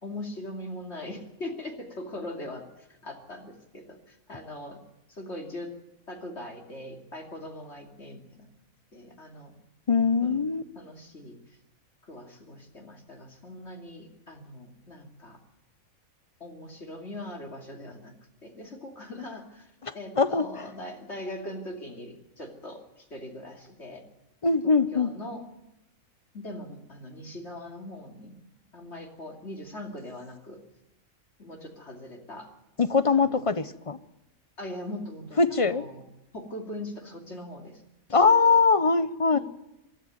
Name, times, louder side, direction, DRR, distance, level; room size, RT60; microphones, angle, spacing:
voice 1, 0.0-4.8 5.1-5.7 6.1-8.5 8.9-9.5 10.2-10.4 10.7-11.4 12.0-15.4 16.4-18.1 18.4-24.0 24.6-25.4 26.3-28.3 28.7-30.6 31.4-32.5 33.1-33.4 34.6-36.0 36.3-37.8 38.1-38.2 39.3-39.4, left 1 dB, 50° left, 1 dB, 3.0 m, -41 dB
voice 2, 9.9-10.6 19.8-20.4 24.4-25.1 32.8-34.0 35.4-35.8 38.1-39.4, left 4 dB, 30° left, 13 dB, 0.6 m, -22 dB
23.5 x 13.5 x 9.4 m, 0.90 s
omnidirectional pair, 1.5 m